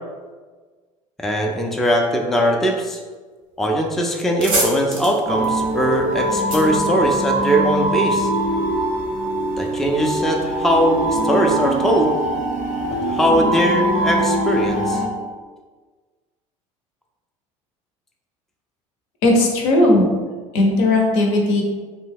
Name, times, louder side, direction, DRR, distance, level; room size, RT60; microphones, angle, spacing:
voice 1, 1.2-3.0 3.6-8.3 9.6-12.1 13.1-15.0, equal, ahead, 1 dB, 0.4 m, -20 dB
sound 1, 3.7-3.8 4.1-7.7, right 2 dB, 90° right, 0.9 m, -27 dB
sound 2, 5.2-15.1, right 1 dB, 50° right, 0.5 m, -22 dB
voice 2, 19.2-20.1 20.5-21.6, left 2 dB, 70° left, 0 dB, 0.7 m, -16 dB
2.7 x 2.2 x 3.4 m, 1.4 s
hypercardioid pair, 75°, 17 cm